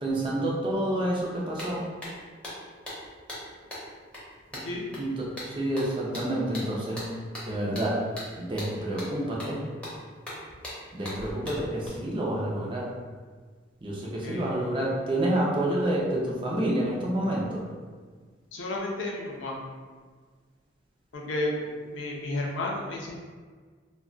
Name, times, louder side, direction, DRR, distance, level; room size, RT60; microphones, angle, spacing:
voice 1, 0.0-1.8 4.5-4.6 5.0-7.1 7.4-8.0 8.4-9.6 10.9-12.9 13.8-17.6, right 1 dB, 25° right, -4 dB, 0.5 m, -28 dB
sound 1, 1.2-1.3 1.6-11.9, equal, 5° left, 0.7 m, -41 dB
voice 2, 18.5-19.6 21.1-23.2, left 1 dB, 75° left, -1 dB, 0.5 m, -32 dB
2.3 x 2.2 x 3.7 m, 1.5 s
head